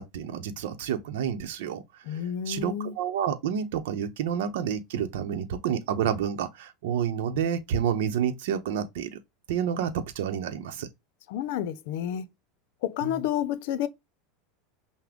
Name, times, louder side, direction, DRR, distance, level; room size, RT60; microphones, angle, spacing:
voice 1, 0.0-1.8 2.1-2.2 2.5-9.2 9.5-10.9 13.0-13.2, right 8 dB, 80° right, 0.7 m, -29 dB
voice 2, 2.0-2.9 11.3-12.3 12.8-13.9, left 10 dB, 65° left, 0.6 m, -30 dB
6.0 x 2.1 x 3.4 m
supercardioid pair, 145°, 0 cm